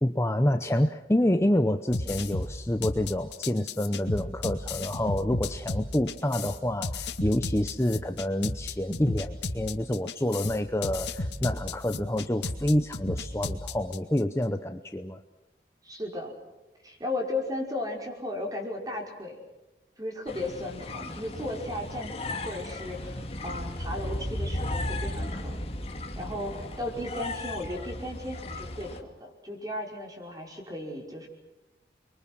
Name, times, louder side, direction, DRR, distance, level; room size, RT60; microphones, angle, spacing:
voice 1, 0.0-15.2, left 1 dB, 15° left, 8 dB, 0.8 m, -27 dB
sound 1, 1.9-14.2, left 2 dB, 85° left, 2.2 m, -34 dB
voice 2, 15.8-16.4 16.8-19.4 20.0-25.7 26.2-31.3, left 1 dB, 20° right, 1 dB, 5.5 m, -35 dB
sound 2, 20.3-29.0, left 1 dB, 35° left, 2.2 m, -35 dB
30.0 x 23.5 x 6.3 m, 1.0 s
head